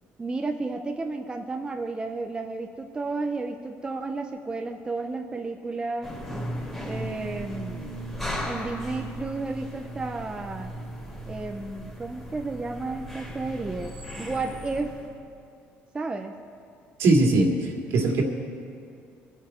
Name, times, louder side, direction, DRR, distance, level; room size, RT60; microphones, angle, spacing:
voice 1, 0.2-6.2 6.8-8.0 8.4-10.7 11.3-15.0 15.9-16.3, right 3 dB, 20° right, 3 dB, 0.7 m, -32 dB
sound 1, 6.0-15.2, equal, 5° left, 3.0 m, -36 dB
voice 2, 17.0-18.2, right 2 dB, 70° right, 1 dB, 2.3 m, -21 dB
25.0 x 8.7 x 4.4 m, 2.4 s
cardioid pair, 125°, 5 cm